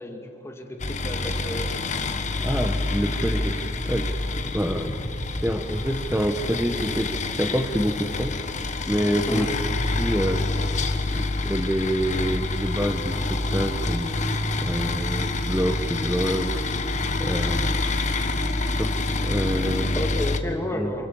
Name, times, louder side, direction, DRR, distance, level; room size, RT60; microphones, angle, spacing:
voice 1, 0.0-1.8 9.3-9.5 20.0-21.1, left 1 dB, 15° left, 3 dB, 2.4 m, -31 dB
sound 1, 0.8-20.4, left 2 dB, 40° left, 1.4 m, -27 dB
voice 2, 2.4-4.9 5.4-9.5 10.0-14.3 14.6-16.7 17.2-17.7 18.7-18.9 19.2-20.0 20.7-20.9, equal, 10° right, 4 dB, 1.0 m, -27 dB
27.5 x 27.0 x 7.0 m, 2.6 s
head